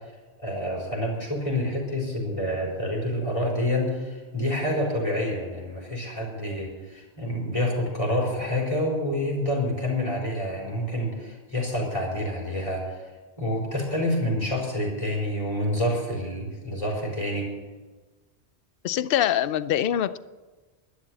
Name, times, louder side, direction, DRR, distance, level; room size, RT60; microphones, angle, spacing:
voice 1, 0.4-13.0 13.4-17.5, left 1 dB, 30° left, -2 dB, 4.1 m, -28 dB
voice 2, 18.8-20.2, left 11 dB, 65° left, 15 dB, 0.7 m, -24 dB
12.0 x 11.5 x 7.4 m, 1.3 s
omnidirectional pair, 1.1 m